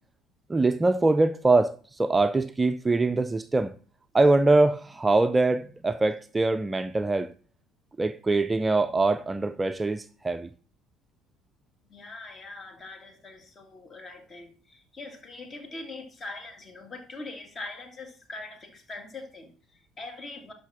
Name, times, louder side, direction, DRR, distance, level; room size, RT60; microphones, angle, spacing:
voice 1, 0.5-3.8 4.1-7.3 8.0-10.5, right 2 dB, 15° right, 0.4 m, -23 dB
voice 2, 11.9-20.5, left 2 dB, 30° left, 2.1 m, -42 dB
11.5 x 5.5 x 4.2 m
figure-of-eight pair, 55°, 0 cm